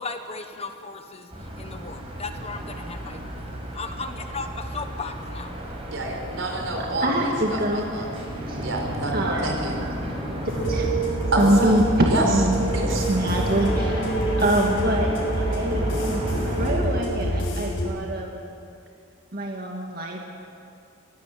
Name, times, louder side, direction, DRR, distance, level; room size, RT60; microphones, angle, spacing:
voice 1, 0.0-3.2 3.7-5.5, left 4 dB, 30° left, 7 dB, 1.3 m, -36 dB
sound 1, 1.3-16.8, equal, 30° right, 5.4 m, -33 dB
voice 2, 5.9-8.1 8.6-9.7 11.3-11.7 12.1-12.2 12.7-13.1, right 2 dB, 70° right, 2 dB, 4.4 m, -28 dB
voice 3, 7.0-7.9 8.5-8.6 9.1-9.9 10.5-10.9 11.4-12.6 13.1-14.1 14.4-16.2 16.5-18.3 19.3-20.2, right 1 dB, 50° right, 0 dB, 2.0 m, -24 dB
sound 2, 10.5-17.9, right 1 dB, 75° left, 6.7 m, -26 dB
23.5 x 17.5 x 8.5 m, 2.5 s
head